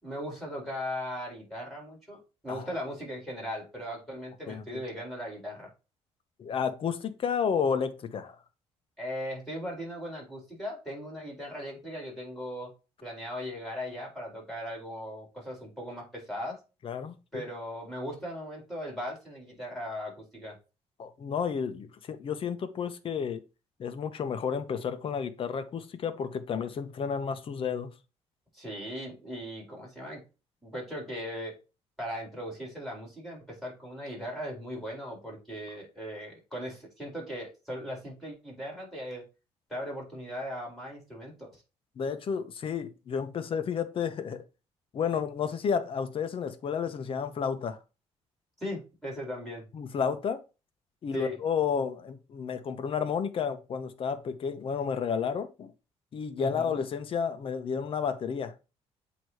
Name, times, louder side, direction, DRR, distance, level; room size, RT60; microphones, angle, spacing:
voice 1, 0.0-5.7 9.0-12.7 13.0-16.6 17.3-20.6 28.5-30.2 30.6-31.6 32.0-39.2 39.7-41.6 48.6-49.6 51.1-51.4 56.4-56.8, equal, ahead, 4.3 m, -38 dB
voice 2, 4.5-4.8 6.4-8.4 16.8-17.4 21.0-23.4 23.8-27.9 42.0-44.4 44.9-47.8 49.7-50.4 51.0-55.7 56.1-58.5, left 6 dB, 50° left, 1.0 m, -31 dB
8.0 x 3.1 x 4.8 m
cardioid pair, 100°, 12 cm